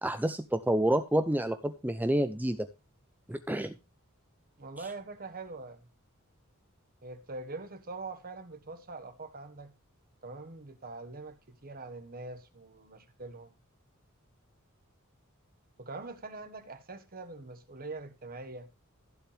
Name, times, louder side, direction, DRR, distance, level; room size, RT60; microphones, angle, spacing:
voice 1, 0.0-2.7 3.3-3.8, right 1 dB, 10° right, 0.6 m, -28 dB
voice 2, 4.6-5.9 7.0-9.7 10.2-13.5 15.8-18.7, right 3 dB, 45° right, 1.5 m, -43 dB
15.0 x 7.6 x 3.4 m
head